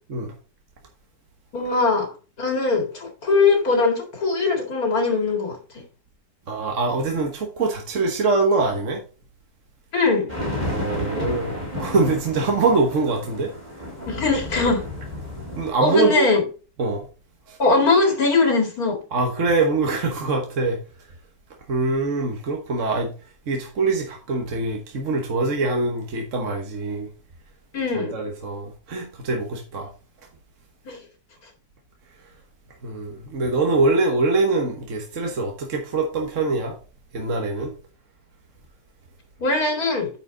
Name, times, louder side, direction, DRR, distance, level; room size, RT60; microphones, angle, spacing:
voice 1, 1.5-2.1 2.4-5.8 9.9-10.3 14.1-14.8 15.8-16.4 17.6-19.0 27.7-28.2 30.8-31.0 39.4-40.1, left 3 dB, 60° left, 2.6 m, -21 dB
voice 2, 6.5-9.0 10.7-13.5 15.6-16.3 16.8-17.1 17.5-17.6 19.1-20.8 21.7-23.1 23.5-27.1 27.9-29.9 32.8-36.8 37.1-37.7, right 3 dB, 50° right, 1.4 m, -23 dB
sound 1, 10.3-15.7, left 1 dB, 25° right, 3.0 m, -32 dB
9.7 x 4.9 x 3.8 m
omnidirectional pair, 1.8 m